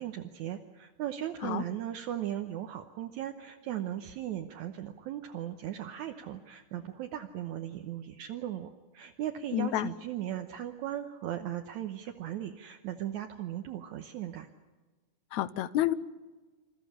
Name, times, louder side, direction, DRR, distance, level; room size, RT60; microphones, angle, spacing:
voice 1, 0.0-14.5, right 11 dB, 75° right, 4 dB, 2.3 m, -37 dB
voice 2, 9.5-9.9 15.3-15.9, left 13 dB, 70° left, 14 dB, 2.1 m, -29 dB
28.0 x 14.5 x 10.0 m, 1.3 s
omnidirectional pair, 3.6 m